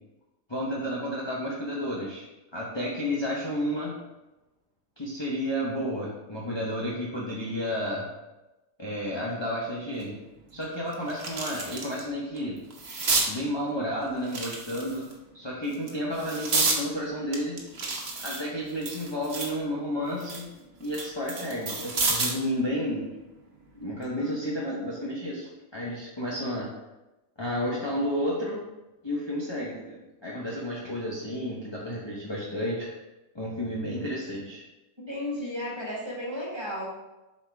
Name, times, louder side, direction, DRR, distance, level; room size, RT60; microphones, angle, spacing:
voice 1, 0.5-2.2 2.5-4.0 5.0-8.1 8.8-10.2 10.5-12.6 13.2-15.0 15.3-17.6 18.2-20.5 20.8-23.1 23.7-26.7 27.4-28.6 29.0-32.9 33.3-34.6, equal, 20° left, -6 dB, 1.0 m, -31 dB
sound 1, 10.0-10.1 10.6-12.0 12.4-13.3 14.2-15.1 15.7-16.8 17.3-19.6 20.0-22.4 23.8-24.0, right 3 dB, 50° right, 1.2 m, -30 dB
voice 2, 35.1-36.9, left 1 dB, 20° right, -5 dB, 1.8 m, -34 dB
7.3 x 4.9 x 3.5 m, 1.0 s
omnidirectional pair, 1.4 m